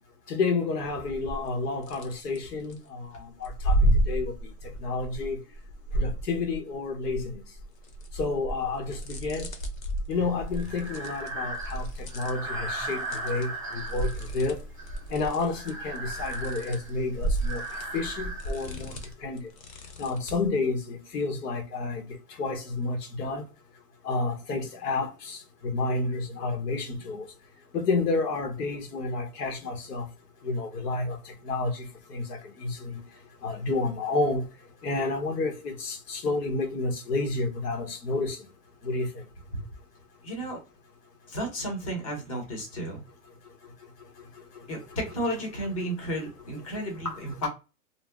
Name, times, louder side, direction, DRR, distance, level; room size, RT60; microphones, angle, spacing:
voice 1, 0.3-3.8 4.1-4.3 4.8-5.4 6.0-7.3 8.2-9.5 10.1-11.9 12.1-14.6 15.1-17.6 17.9-18.9 19.2-19.5 20.0-22.1 22.4-23.4 24.0-25.4 25.6-27.2 27.7-30.1 30.4-31.2 31.4-33.0 33.4-34.5 34.8-38.4 38.8-39.1 47.0-47.5, left 3 dB, 80° left, 1.2 m, -30 dB
sound 1, 0.9-1.5 1.8-2.8 3.4-6.7 7.0-13.5 13.7-20.5, right 1 dB, 60° left, 1.0 m, -32 dB
Breathing, 10.1-19.1, right 2 dB, 25° right, 0.4 m, -38 dB
voice 2, 40.2-40.6 41.3-43.0 44.7-47.5, right 1 dB, 25° left, 0.8 m, -33 dB
2.7 x 2.0 x 3.4 m
hypercardioid pair, 180°, 46 cm